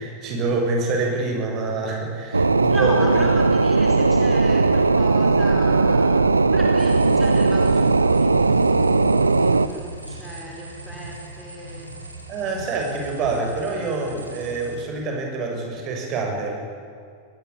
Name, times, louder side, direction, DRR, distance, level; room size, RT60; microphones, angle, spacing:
voice 1, 0.0-3.2 12.3-16.6, right 3 dB, 35° right, 2 dB, 6.7 m, -26 dB
sound 1, 2.3-9.7, right 3 dB, 80° right, 0.7 m, -18 dB
voice 2, 2.7-11.9, equal, 5° right, -2 dB, 4.6 m, -36 dB
sound 2, 6.8-14.8, right 2 dB, 85° left, 3.6 m, -39 dB
21.5 x 20.5 x 8.5 m, 2.4 s
figure-of-eight pair, 90°, 0 cm